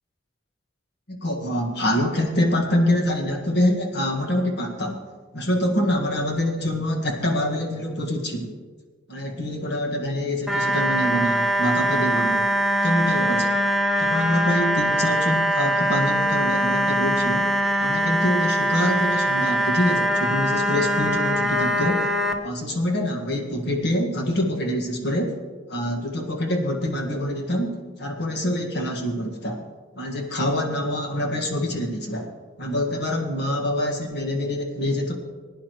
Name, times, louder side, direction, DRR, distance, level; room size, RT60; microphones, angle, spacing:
voice 1, 1.1-5.0 5.3-8.5 9.1-12.5 12.8-13.6 14.0-17.5 17.8-22.1 22.4-25.3 25.7-27.7 28.0-29.6 29.9-32.3 32.6-35.1, left 1 dB, 60° left, 2 dB, 1.8 m, -25 dB
sound 1, 10.5-22.3, equal, ahead, 0.9 m, -22 dB
20.5 x 10.0 x 3.1 m, 1.5 s
head